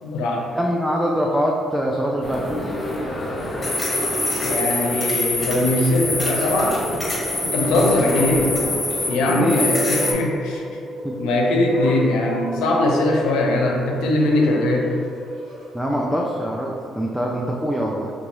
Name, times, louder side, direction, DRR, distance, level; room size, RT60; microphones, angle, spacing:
voice 1, 0.0-0.4 4.4-6.8 7.5-8.5 9.1-10.6 11.2-14.9, left 2 dB, 80° left, 0 dB, 0.5 m, -21 dB
voice 2, 0.5-2.5 8.3-8.4 9.3-9.6 11.0-11.2 15.7-18.1, equal, 10° right, -2 dB, 0.4 m, -23 dB
sound 1, 2.2-10.1, left 1 dB, 30° left, 0.9 m, -25 dB
sound 2, 7.7-15.7, equal, 85° right, 1.0 m, -30 dB
2.9 x 2.3 x 3.9 m, 2.3 s
supercardioid pair, 65°, 0 cm